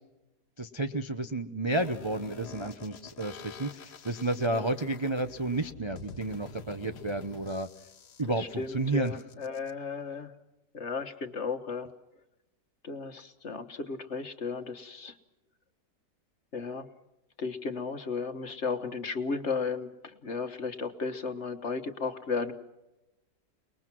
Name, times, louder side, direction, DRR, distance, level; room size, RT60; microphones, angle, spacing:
voice 1, 0.6-7.7 8.2-9.2, right 2 dB, 25° right, 6 dB, 0.6 m, -31 dB
sound 1, 1.7-9.7, left 5 dB, 70° left, 1.7 m, -48 dB
voice 2, 8.4-10.3 10.7-11.9 12.8-15.1 16.5-16.9 17.4-19.9 20.2-22.5, left 4 dB, 40° left, 8 dB, 1.6 m, -34 dB
29.5 x 21.0 x 6.1 m, 0.95 s
omnidirectional pair, 1.9 m